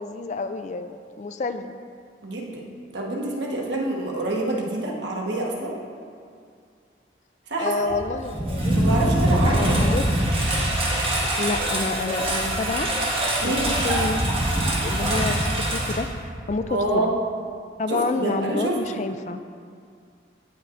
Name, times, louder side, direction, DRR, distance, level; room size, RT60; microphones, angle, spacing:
voice 1, 0.0-1.8 7.6-9.1 9.4-10.1 11.4-12.9 13.4-14.2 14.6-16.1 16.5-17.1 17.8-19.4, left 3 dB, 40° left, 9 dB, 0.3 m, -29 dB
voice 2, 2.2-2.6 2.9-5.7 7.5-8.0 8.7-9.8 13.4-13.7 16.7-17.1 17.9-19.0, right 2 dB, 75° right, -2 dB, 1.3 m, -27 dB
Engine, 7.9-16.6, right 1 dB, 30° right, 1.5 m, -23 dB
16.5 x 5.7 x 2.6 m, 2.2 s
head